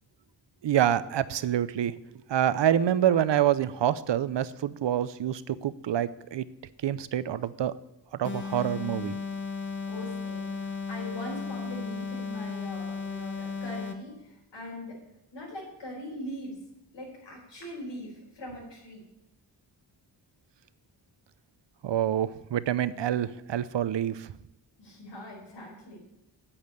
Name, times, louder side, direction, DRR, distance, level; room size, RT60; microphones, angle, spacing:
voice 1, 0.6-1.9 2.3-6.4 6.8-7.7 8.2-9.2 21.8-24.3, right 10 dB, 75° right, 16 dB, 0.7 m, -26 dB
sound 1, 8.2-14.1, left 5 dB, 25° left, 1.0 m, -35 dB
voice 2, 9.9-15.0 15.3-16.6 16.9-19.0 24.8-26.0, equal, 80° left, -4 dB, 4.9 m, -41 dB
8.7 x 8.6 x 9.2 m, 0.86 s
wide cardioid pair, 160°, 44 cm